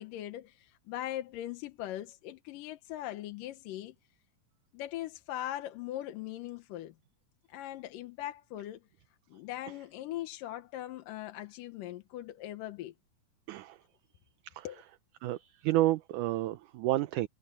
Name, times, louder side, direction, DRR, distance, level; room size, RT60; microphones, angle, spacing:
voice 1, 0.0-4.0 4.7-6.9 7.5-8.8 9.3-12.9 14.6-14.8, left 13 dB, 80° left, 2.6 m, -40 dB
voice 2, 13.5-13.8 14.4-14.7 15.2-17.3, right 16 dB, 75° right, 2.1 m, -30 dB
omnidirectional pair, 3.9 m